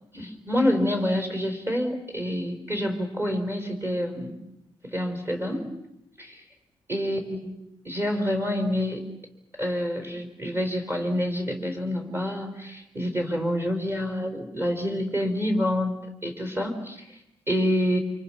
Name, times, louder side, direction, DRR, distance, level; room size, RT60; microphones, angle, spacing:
voice 1, 0.1-4.3 4.8-5.7 6.2-6.4 6.9-7.6 7.8-9.0 9.6-15.9 16.2-17.2 17.5-18.0, left 1 dB, 25° right, 4 dB, 4.8 m, -27 dB
29.0 x 27.0 x 6.0 m, 0.81 s
wide cardioid pair, 135°, 9 cm